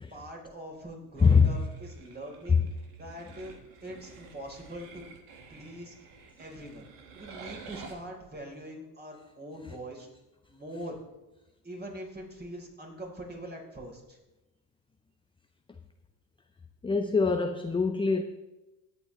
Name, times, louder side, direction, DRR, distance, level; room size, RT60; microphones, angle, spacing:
voice 1, 0.1-2.6 3.0-3.5 3.8-5.0 5.5-5.9 6.4-6.9 7.1-10.1 10.5-11.0 11.6-14.2, right 1 dB, 20° right, 0 dB, 3.9 m, -43 dB
voice 2, 1.2-1.6 16.8-18.2, left 5 dB, 10° left, 7 dB, 0.6 m, -23 dB
sound 1, 1.2-7.9, right 4 dB, 70° right, 1.9 m, -50 dB
19.0 x 8.1 x 3.2 m, 1.0 s
hypercardioid pair, 75°, 47 cm